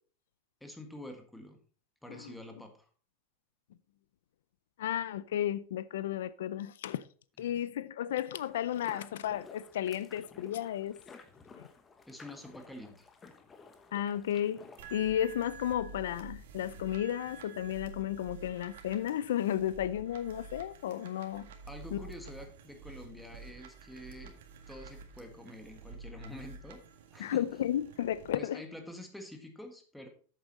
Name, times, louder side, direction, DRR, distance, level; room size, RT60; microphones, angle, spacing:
voice 1, 0.6-1.6 2.0-2.9 7.4-7.5 12.1-13.1 21.7-24.4 24.7-26.8 27.1-27.5 28.3-30.1, left 1 dB, ahead, 1.5 m, -47 dB
voice 2, 4.8-7.0 7.4-11.0 13.9-14.6 14.9-21.5 27.2-28.6, left 11 dB, 85° left, 0.4 m, -33 dB
sound 1, 8.4-15.0, left 4 dB, 20° left, 1.1 m, -54 dB
sound 2, 14.8-28.3, right 4 dB, 80° right, 1.8 m, -50 dB
8.1 x 7.5 x 4.0 m
supercardioid pair, 140°, 0 cm